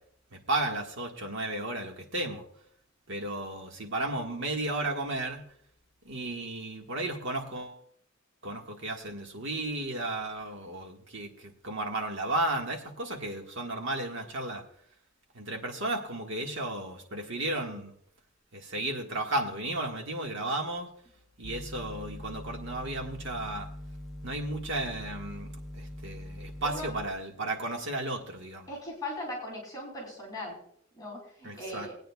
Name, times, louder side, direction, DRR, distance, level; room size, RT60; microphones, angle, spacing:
voice 1, 0.3-2.4 3.1-5.4 6.0-7.7 8.4-14.6 15.3-17.9 18.5-20.9 21.4-23.7 24.2-28.7 31.4-31.9, right 2 dB, 65° right, 2 dB, 1.6 m, -34 dB
sound 1, 21.4-27.1, equal, ahead, 0.5 m, -42 dB
voice 2, 28.7-30.6 31.0-31.9, left 1 dB, 20° left, -3 dB, 2.8 m, -39 dB
21.5 x 9.0 x 2.3 m, 0.67 s
head